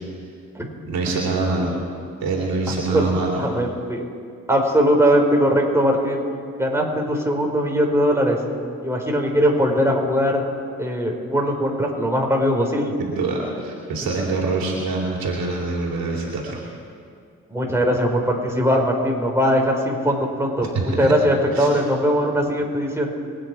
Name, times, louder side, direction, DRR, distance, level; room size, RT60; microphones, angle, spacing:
voice 1, 0.9-1.8 2.2-3.4 13.0-16.6 20.7-21.1 21.5-21.7, right 3 dB, 85° right, -2 dB, 3.0 m, -24 dB
voice 2, 3.4-4.0 4.5-6.2 6.6-8.4 8.8-10.4 10.8-12.9 17.5-23.1, equal, 5° right, 0 dB, 4.2 m, -20 dB
25.0 x 9.2 x 4.7 m, 2.2 s
supercardioid pair, 40°, 35 cm